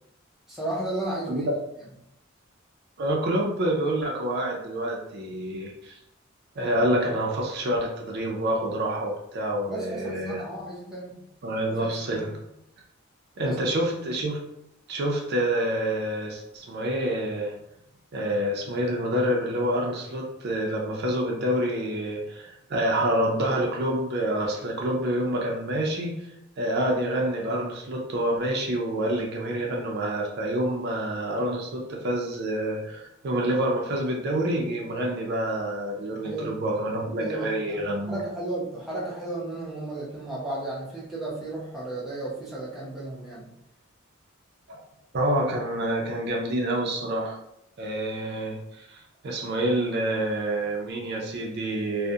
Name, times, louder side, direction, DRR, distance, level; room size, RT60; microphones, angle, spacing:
voice 1, 0.5-1.5 9.7-11.2 11.7-11.8 12.1-12.4 13.5-13.9 24.6-24.8 36.2-36.6 37.2-43.5, right 2 dB, ahead, -7 dB, 0.5 m, -34 dB
voice 2, 3.0-6.0 6.6-10.4 11.4-12.3 13.4-14.4 14.9-17.5 18.1-38.2 44.7-44.8 45.1-47.4 47.8-52.1, right 1 dB, 50° right, -1 dB, 0.4 m, -27 dB
2.3 x 2.0 x 2.7 m, 0.80 s
head